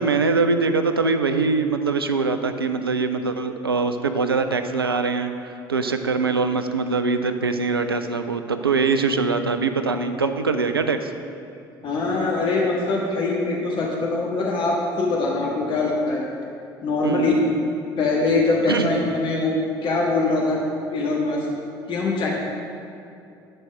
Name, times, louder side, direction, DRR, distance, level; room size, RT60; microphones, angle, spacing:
voice 1, 0.0-11.1 17.0-17.3 18.7-18.9, right 4 dB, 85° right, 8 dB, 0.4 m, -23 dB
voice 2, 11.8-16.3 16.8-17.3 18.0-19.5 19.8-20.6 20.9-21.5 21.9-22.3, left 3 dB, 40° left, -3 dB, 1.5 m, -23 dB
11.0 x 4.4 x 6.2 m, 2.6 s
figure-of-eight pair, 60°, 12 cm